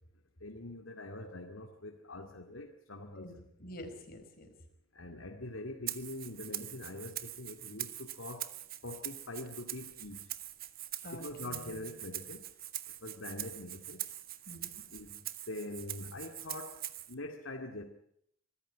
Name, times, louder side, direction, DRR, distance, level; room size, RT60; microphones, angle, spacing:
voice 1, 0.4-3.4 4.9-8.5 8.8-10.3 11.1-12.4 13.0-14.0 14.9-15.2 15.5-17.8, left 2 dB, 80° left, 3 dB, 2.3 m, -44 dB
voice 2, 3.1-4.5 11.0-11.8 14.5-14.8, equal, 50° left, 4 dB, 4.8 m, -48 dB
Rattle (instrument), 5.9-17.1, right 13 dB, 50° right, 1.2 m, -43 dB
25.0 x 14.5 x 10.0 m, 0.72 s
head